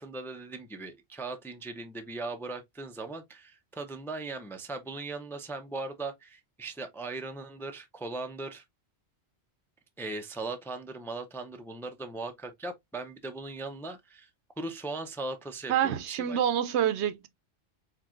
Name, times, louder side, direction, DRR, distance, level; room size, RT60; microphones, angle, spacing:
voice 1, 0.0-8.6 10.0-14.3 14.6-16.4, right 3 dB, 5° left, 0.4 m, -39 dB
voice 2, 15.7-17.3, right 9 dB, 75° right, 0.9 m, -27 dB
4.5 x 3.6 x 2.4 m
omnidirectional pair, 1.2 m